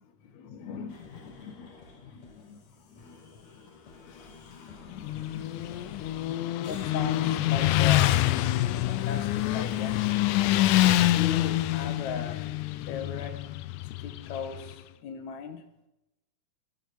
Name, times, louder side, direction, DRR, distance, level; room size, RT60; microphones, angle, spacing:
voice 1, 0.0-8.5 8.8-10.6 11.1-13.5 14.0-15.7, left 6 dB, 70° left, 2.6 m, -40 dB
sound 1, 0.9-11.0, left 4 dB, 50° left, 2.6 m, -47 dB
Motorcycle, 4.9-14.7, left 15 dB, 85° left, 2.2 m, -26 dB
20.5 x 7.4 x 6.0 m
omnidirectional pair, 3.5 m